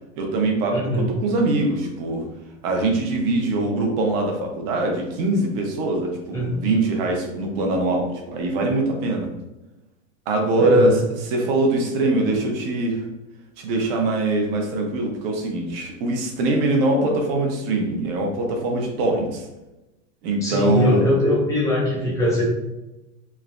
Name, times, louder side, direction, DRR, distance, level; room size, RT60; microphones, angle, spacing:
voice 1, 0.1-2.3 2.6-9.3 10.3-13.0 13.6-19.5 20.2-21.1, right 2 dB, 45° right, 1 dB, 0.6 m, -22 dB
voice 2, 0.7-1.1 6.3-6.5 10.6-11.0 20.4-22.4, left 1 dB, 10° left, -5 dB, 0.4 m, -21 dB
3.1 x 2.0 x 2.4 m, 0.99 s
supercardioid pair, 150°, 41 cm